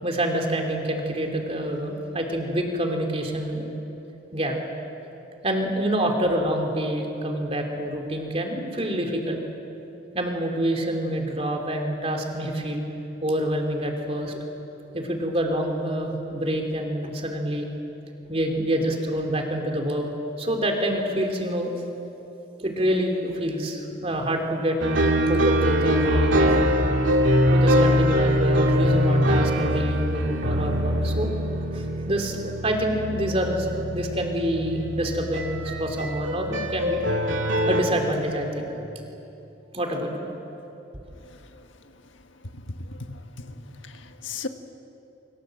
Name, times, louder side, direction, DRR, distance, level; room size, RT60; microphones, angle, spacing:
voice 1, 0.0-3.7 4.3-4.6 5.4-9.4 10.1-12.8 13.2-14.4 14.9-17.7 18.3-20.1 20.4-21.7 22.6-26.6 27.5-31.3 31.7-37.0 37.7-38.7 39.7-40.3, right 1 dB, 30° right, 2 dB, 3.3 m, -27 dB
sound 1, 24.8-37.8, equal, 85° right, 2.3 m, -23 dB
voice 2, 41.2-41.7 42.5-44.5, left 3 dB, 85° left, 6 dB, 1.7 m, -37 dB
28.0 x 24.5 x 7.8 m, 3.0 s
head